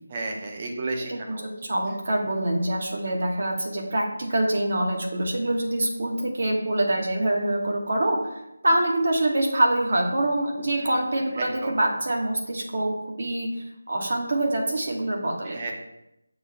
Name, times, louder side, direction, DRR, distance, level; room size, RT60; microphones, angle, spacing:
voice 1, 0.1-1.5 10.8-10.9 11.4-11.7 15.4-15.7, right 3 dB, 25° right, 1 dB, 1.0 m, -32 dB
voice 2, 1.0-8.2 8.6-15.6, right 1 dB, 55° right, 0 dB, 1.5 m, -25 dB
6.7 x 3.2 x 5.4 m, 0.87 s
figure-of-eight pair, 170°, 0 cm